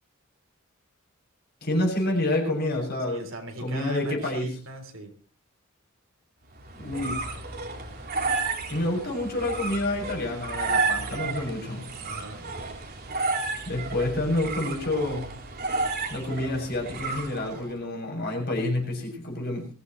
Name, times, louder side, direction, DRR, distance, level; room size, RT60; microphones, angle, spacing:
voice 1, 1.6-3.3 3.6-4.6 6.8-7.2 8.7-11.9 13.7-15.3 16.1-19.7, left 1 dB, 50° left, 1 dB, 7.3 m, -28 dB
voice 2, 3.1-5.1 12.0-12.4, right 2 dB, 65° right, 5 dB, 3.5 m, -40 dB
sound 1, 6.6-17.7, right 3 dB, 50° right, 3.5 m, -32 dB
22.0 x 15.5 x 3.2 m, 0.36 s
head